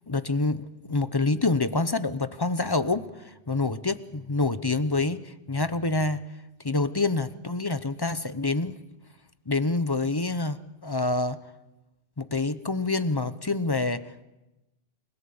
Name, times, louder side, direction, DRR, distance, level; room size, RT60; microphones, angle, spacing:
voice 1, 0.1-6.2 6.6-8.8 9.5-11.4 12.2-14.0, left 3 dB, 25° left, 12 dB, 0.8 m, -27 dB
28.5 x 17.5 x 7.1 m, 1.0 s
omnidirectional pair, 1.2 m